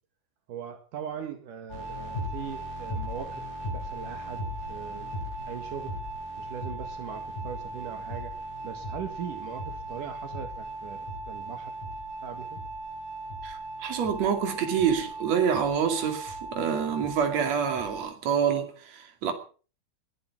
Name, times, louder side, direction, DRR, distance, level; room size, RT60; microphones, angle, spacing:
voice 1, 0.5-3.5 3.7-5.1 5.5-5.9 6.4-8.3 8.6-11.7 12.2-12.6, right 8 dB, 75° right, 3.3 m, -40 dB
sound 1, 1.7-18.0, right 1 dB, 75° left, 8.8 m, -37 dB
voice 2, 13.4-19.3, right 7 dB, 55° right, 3.6 m, -27 dB
21.0 x 11.0 x 6.0 m
omnidirectional pair, 3.7 m